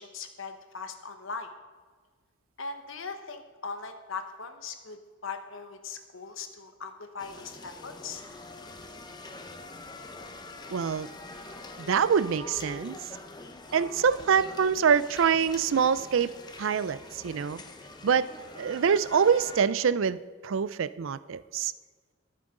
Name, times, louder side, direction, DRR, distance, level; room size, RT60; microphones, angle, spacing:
voice 1, 0.0-1.5 2.6-8.2, left 5 dB, 70° left, 7 dB, 1.2 m, -40 dB
sound 1, 7.2-19.6, left 2 dB, 20° left, 0.7 m, -45 dB
voice 2, 10.7-11.1 11.8-13.0 13.7-16.3 16.6-17.6 18.0-18.3 18.6-21.7, right 7 dB, 65° right, 15 dB, 0.4 m, -25 dB
21.5 x 7.6 x 3.8 m, 1.5 s
head